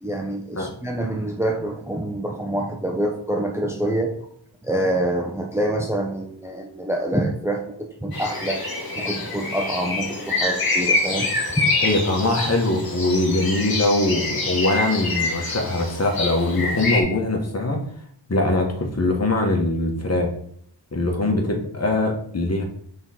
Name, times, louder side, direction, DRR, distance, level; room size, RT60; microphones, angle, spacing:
voice 1, 0.0-4.1 4.6-8.6 9.0-11.3 11.6-11.7, right 1 dB, 5° right, 2 dB, 0.7 m, -26 dB
sound 1, 8.1-17.0, left 3 dB, 50° left, 1.7 m, -26 dB
voice 2, 11.8-17.8 18.3-20.3 20.9-22.6, left 2 dB, 35° left, 2 dB, 1.5 m, -22 dB
5.7 x 3.9 x 4.4 m, 0.66 s
cardioid pair, 60°, 45 cm